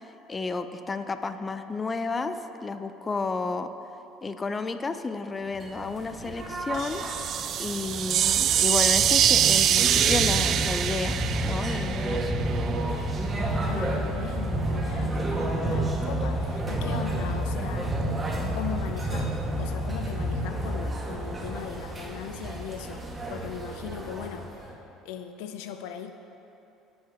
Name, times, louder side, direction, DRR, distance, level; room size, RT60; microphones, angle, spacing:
voice 1, 0.3-3.7 4.2-7.0 7.6-11.2 11.4-12.4, left 4 dB, 25° left, 10 dB, 0.6 m, -31 dB
sound 1, 5.5-24.7, right 1 dB, 20° right, 1.9 m, -30 dB
sound 2, 6.7-12.6, right 10 dB, 55° right, 0.4 m, -24 dB
voice 2, 13.5-18.0 18.5-19.3 19.6-24.6 25.0-26.1, left 8 dB, 85° left, 8 dB, 0.6 m, -39 dB
25.5 x 8.6 x 3.0 m, 3.0 s
supercardioid pair, 95°, 0 cm